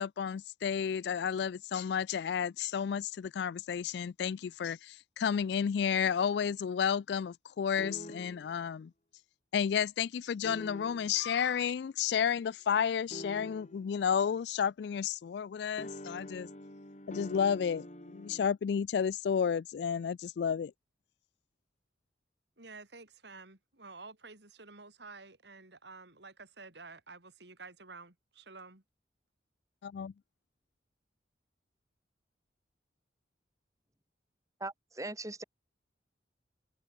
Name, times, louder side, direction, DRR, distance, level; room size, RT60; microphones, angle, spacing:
voice 1, 0.0-8.9 9.5-16.5 17.1-20.7 29.8-30.1, left 7 dB, 65° left, 0.3 m, -32 dB
sound 1, 7.8-8.6 10.4-11.2 13.1-13.9 15.8-18.5, left 1 dB, 40° left, 3.5 m, -45 dB
voice 2, 22.6-28.8, right 3 dB, 65° right, 3.3 m, -51 dB
voice 3, 34.6-35.4, right 2 dB, 15° right, 2.9 m, -40 dB
head